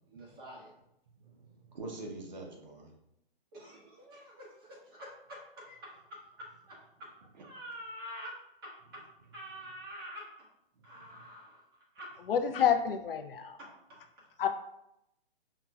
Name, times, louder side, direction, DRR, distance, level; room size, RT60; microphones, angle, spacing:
voice 1, 0.1-0.7 3.5-7.1 7.4-8.4 8.6-9.0 9.3-10.3 10.8-11.6 11.9-12.1 13.6-13.7, equal, 25° right, -6 dB, 1.0 m, -47 dB
voice 2, 1.1-2.9 10.9-11.3, right 2 dB, 45° right, 1 dB, 0.7 m, -45 dB
voice 3, 12.2-13.6 14.4-14.5, left 8 dB, 65° left, 6 dB, 0.4 m, -28 dB
5.7 x 2.1 x 2.3 m, 0.82 s
hypercardioid pair, 170°, 30 cm